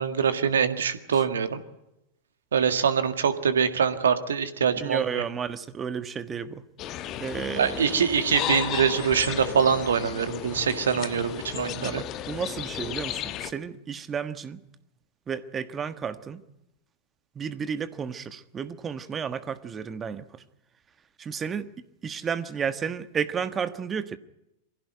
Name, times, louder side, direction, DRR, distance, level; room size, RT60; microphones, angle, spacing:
voice 1, 0.0-1.6 2.5-5.2 7.6-12.0, right 7 dB, 65° right, 10 dB, 1.8 m, -24 dB
voice 2, 4.7-6.6 7.2-7.9 11.8-14.6 15.3-16.4 17.3-20.4 21.2-21.7 22.0-24.2, right 7 dB, 20° right, 12 dB, 1.3 m, -32 dB
sound 1, 6.8-13.5, left 11 dB, 35° left, 1.3 m, -34 dB
23.5 x 16.0 x 9.3 m, 0.89 s
figure-of-eight pair, 90°, 0 cm